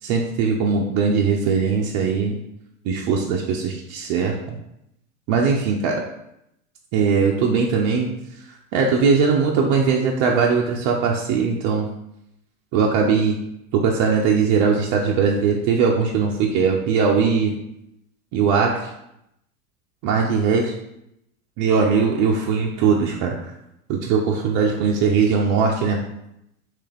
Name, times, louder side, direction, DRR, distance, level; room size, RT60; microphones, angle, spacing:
voice 1, 0.0-2.4 2.8-4.6 5.3-6.0 6.9-11.9 12.7-13.4 13.7-17.6 18.3-18.9 20.0-20.7 21.6-23.5 23.9-26.0, right 5 dB, 45° right, 0 dB, 0.6 m, -20 dB
3.4 x 3.2 x 3.4 m, 0.82 s
hypercardioid pair, 90°, 43 cm